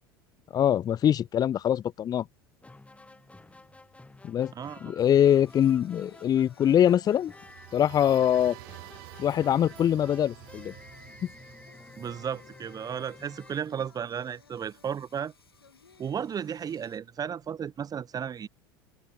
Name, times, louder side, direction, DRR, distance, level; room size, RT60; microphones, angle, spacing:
voice 1, 0.5-2.3 4.2-4.5 4.8-7.3 7.7-8.6 9.2-10.7, left 10 dB, 30° left, 0.6 m, -23 dB
Singing, 0.8-17.0, left 5 dB, 90° left, 7.6 m, -60 dB
sound 1, 2.6-14.5, left 2 dB, 10° left, 7.1 m, -52 dB
voice 2, 4.5-4.9 12.0-15.3 16.0-18.5, right 8 dB, 30° right, 1.4 m, -34 dB
sound 2, 7.3-13.1, right 34 dB, 60° right, 4.5 m, -49 dB
hypercardioid pair, 75°, 12 cm